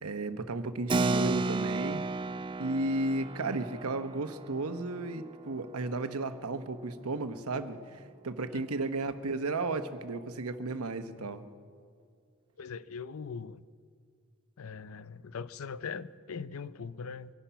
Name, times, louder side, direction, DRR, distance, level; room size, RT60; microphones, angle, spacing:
voice 1, 0.0-2.1 2.6-11.4, right 2 dB, 90° right, 1.0 m, -34 dB
Keyboard (musical), 0.9-6.9, right 3 dB, 20° right, 0.3 m, -34 dB
voice 2, 12.6-13.6 14.6-17.3, left 5 dB, 75° left, 0.5 m, -40 dB
24.5 x 10.0 x 5.7 m
head